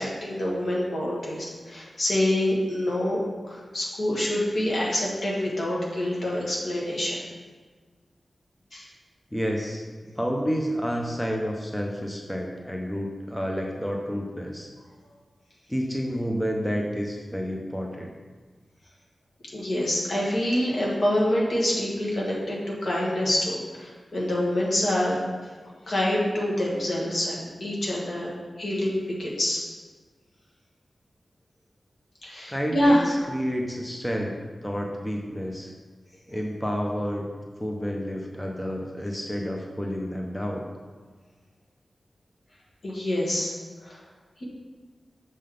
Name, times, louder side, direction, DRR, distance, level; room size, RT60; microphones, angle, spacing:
voice 1, 0.0-3.2 3.4-7.2 8.7-8.9 19.5-25.2 25.9-28.3 28.6-29.7 32.2-33.0 42.8-43.5 43.8-44.0, left 1 dB, 65° left, -4 dB, 1.7 m, -26 dB
voice 2, 9.3-9.8 10.2-14.7 15.7-18.1 32.5-34.4 34.6-35.7 36.3-37.3 37.6-40.7, equal, 5° left, 0 dB, 0.7 m, -30 dB
6.6 x 3.9 x 5.0 m, 1.4 s
wide cardioid pair, 95°, 0 cm